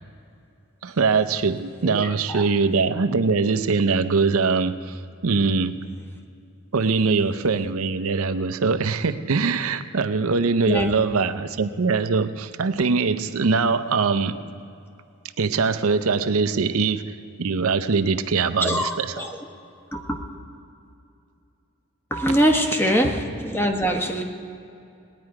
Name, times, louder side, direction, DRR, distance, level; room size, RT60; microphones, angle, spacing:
voice 1, 0.8-5.8 6.7-14.4 15.4-19.3, right 4 dB, 80° right, 11 dB, 0.6 m, -22 dB
voice 2, 18.6-19.3 19.9-20.0 22.1-24.2, equal, 10° left, 3 dB, 1.0 m, -22 dB
19.5 x 10.0 x 4.7 m, 2.6 s
head